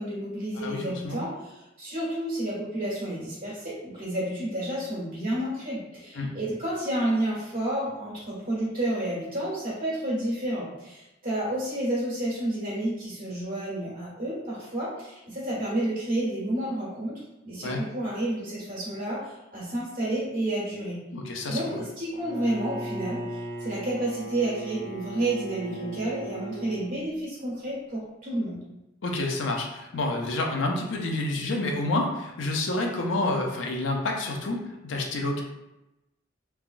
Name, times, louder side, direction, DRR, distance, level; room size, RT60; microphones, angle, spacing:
voice 1, 0.0-21.0 21.5-28.6, right 1 dB, 45° right, -8 dB, 1.5 m, -30 dB
voice 2, 0.6-1.2 6.2-6.3 17.6-17.8 21.1-21.8 29.0-35.4, left 2 dB, 80° left, 1 dB, 0.5 m, -29 dB
Bowed string instrument, 22.1-26.9, right 2 dB, 25° right, 0.7 m, -37 dB
3.3 x 2.3 x 2.5 m, 0.94 s
head